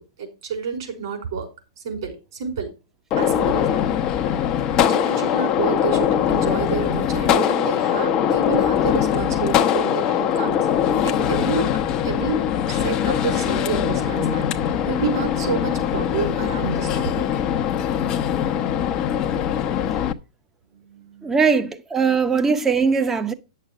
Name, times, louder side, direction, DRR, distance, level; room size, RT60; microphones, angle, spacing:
voice 1, 0.0-1.5 1.8-2.7 3.2-3.8 4.3-4.4 4.9-17.2 20.7-21.5 22.0-22.1, right 5 dB, 60° right, 5.0 m, -30 dB
Gunshot gunfire, 3.1-20.1, left 9 dB, 30° left, 0.9 m, -22 dB
voice 2, 21.2-23.3, right 5 dB, 15° right, 1.1 m, -20 dB
10.5 x 6.7 x 4.9 m
figure-of-eight pair, 105°, 3 cm